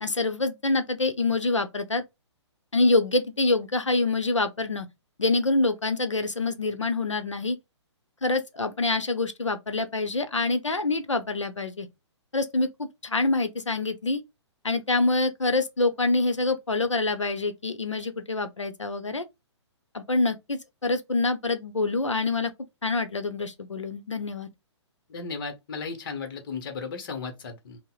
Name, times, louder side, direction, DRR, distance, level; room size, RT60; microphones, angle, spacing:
voice 1, 0.0-2.0 2.7-4.9 5.2-7.6 8.2-11.9 12.3-14.2 14.6-19.2 19.9-22.5 22.8-24.5, left 3 dB, 85° left, 0.6 m, -26 dB
voice 2, 25.1-27.8, left 5 dB, 45° left, 0.8 m, -35 dB
5.4 x 2.0 x 2.3 m
figure-of-eight pair, 125°, 15 cm